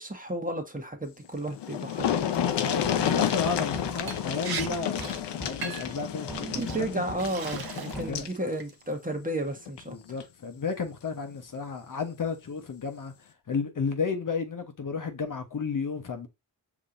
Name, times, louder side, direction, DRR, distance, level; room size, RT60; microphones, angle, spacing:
voice 1, 0.0-2.2 6.4-9.9, right 1 dB, 20° right, 1.2 m, -33 dB
sound 1, 1.2-1.3 1.5-8.4 9.7-9.8 10.2-10.3, left 9 dB, 70° left, 0.7 m, -30 dB
sound 2, 2.0-8.1, right 1 dB, ahead, 1.6 m, -42 dB
voice 2, 2.6-5.0 5.4-7.1 7.9-8.2 9.9-13.1 13.5-16.3, left 5 dB, 45° left, 0.9 m, -32 dB
Liquid, 4.1-4.2 4.4-4.7 5.0-5.2 5.6-6.0 6.6-6.8 7.2-8.1 8.5-8.9, right 6 dB, 55° right, 0.9 m, -37 dB
5.3 x 3.0 x 2.5 m
supercardioid pair, 40°, 43 cm